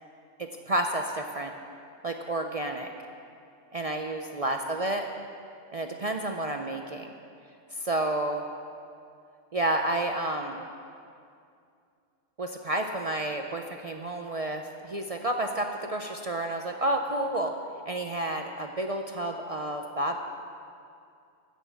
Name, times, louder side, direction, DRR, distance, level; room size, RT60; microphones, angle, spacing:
voice 1, 0.4-1.5 2.0-2.9 3.7-5.0 5.7-7.1 7.7-8.4 9.5-10.7 12.4-17.5 17.9-20.2, right 1 dB, 45° right, 4 dB, 0.4 m, -30 dB
13.5 x 6.3 x 8.0 m, 2.4 s
omnidirectional pair, 1.3 m